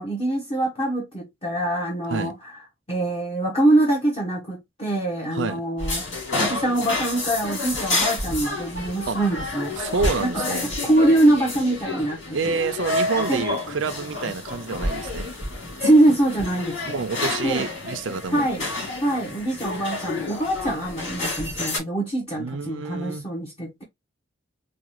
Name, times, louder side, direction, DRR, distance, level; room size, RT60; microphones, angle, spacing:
voice 1, 0.0-2.5 2.9-6.0 6.4-9.7 10.2-10.4 10.8-12.6 13.3-13.4 15.8-16.9 17.4-17.6 18.3-18.7 19.0-23.8, right 1 dB, 30° left, 1.1 m, -23 dB
sound 1, 5.8-21.8, left 2 dB, 70° left, 2.6 m, -29 dB
voice 2, 9.8-10.7 12.3-15.3 16.8-18.5 22.4-23.2, right 4 dB, 75° right, 0.6 m, -28 dB
4.8 x 2.4 x 3.0 m
head